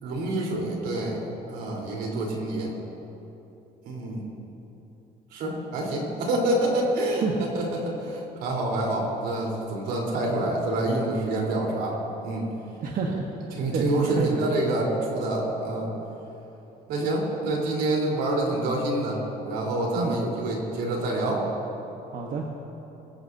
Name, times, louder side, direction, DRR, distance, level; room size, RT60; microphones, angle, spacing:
voice 1, 0.0-1.2 1.5-2.7 3.8-4.2 5.3-12.5 13.6-15.9 16.9-21.4, right 1 dB, 80° right, -2 dB, 4.1 m, -27 dB
voice 2, 12.8-13.2 13.7-14.4 19.9-20.2 22.1-22.4, right 5 dB, 55° right, 0 dB, 1.3 m, -29 dB
24.0 x 15.5 x 2.8 m, 3.0 s
cardioid pair, 110°, 17 cm